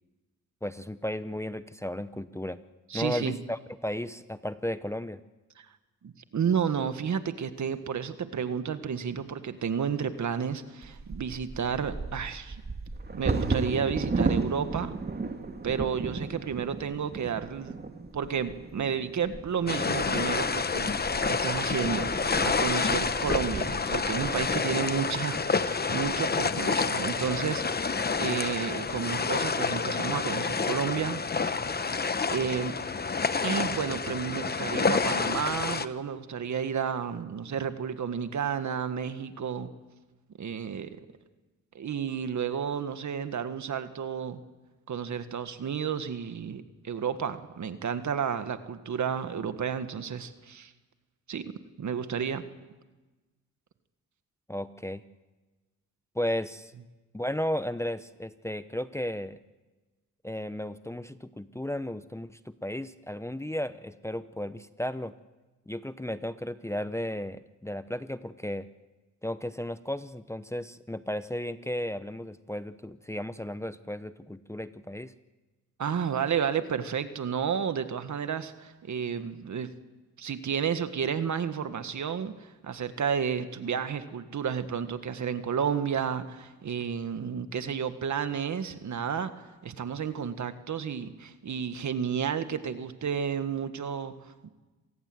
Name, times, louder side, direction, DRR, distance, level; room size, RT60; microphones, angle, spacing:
voice 1, 0.6-2.6 2.9-5.2 54.5-55.0 56.1-56.7 57.1-59.4 60.2-65.1 65.7-68.7 69.2-75.1, left 1 dB, 10° left, 12 dB, 0.8 m, -34 dB
voice 2, 2.9-3.4 5.6-5.7 6.0-12.6 13.1-14.9 15.6-17.8 18.1-20.9 21.3-31.6 32.3-32.8 33.4-39.7 40.4-40.9 41.8-44.4 44.9-50.7 51.3-51.4 51.8-52.4 75.8-79.7 80.2-94.5, right 7 dB, 65° right, 10 dB, 1.7 m, -31 dB
Bird vocalization bird call bird song / Wind / Thunder, 10.8-26.7 27.3-27.4 27.8-28.2 28.6-29.2, right 3 dB, 30° right, 2.1 m, -35 dB
sound 1, 19.7-35.9, left 4 dB, 30° left, 1.0 m, -28 dB
27.0 x 19.0 x 7.9 m, 1.2 s
cardioid pair, 85°, 31 cm